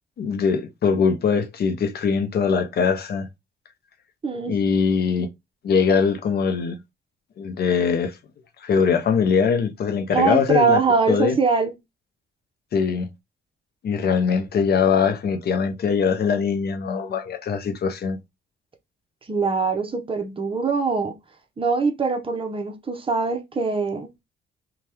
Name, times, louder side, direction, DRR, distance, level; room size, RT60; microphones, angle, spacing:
voice 1, 0.2-3.3 4.5-5.3 5.6-6.8 7.4-8.2 8.6-10.8 11.1-11.4 12.7-13.1 13.8-18.2, left 6 dB, 55° left, 0.6 m, -22 dB
voice 2, 4.2-4.5 10.1-11.7 19.3-21.1 21.6-24.1, right 4 dB, 25° right, 0.7 m, -22 dB
2.7 x 2.2 x 3.3 m
cardioid pair, 90°, 20 cm